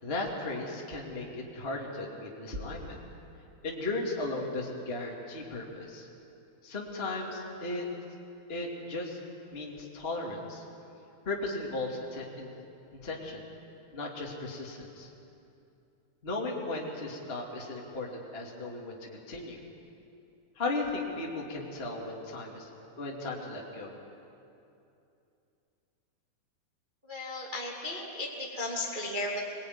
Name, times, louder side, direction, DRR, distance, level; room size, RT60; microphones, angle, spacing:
voice 1, 0.0-3.0 3.6-6.1 6.6-7.9 8.5-9.2 9.5-10.6 11.2-12.5 12.9-13.4 13.9-15.1 16.2-19.6 20.6-22.7 23.0-23.9, left 2 dB, 20° left, -2 dB, 2.1 m, -36 dB
voice 2, 27.1-29.4, left 2 dB, 15° right, -3 dB, 2.0 m, -35 dB
25.5 x 20.0 x 9.5 m, 2.7 s
omnidirectional pair, 4.6 m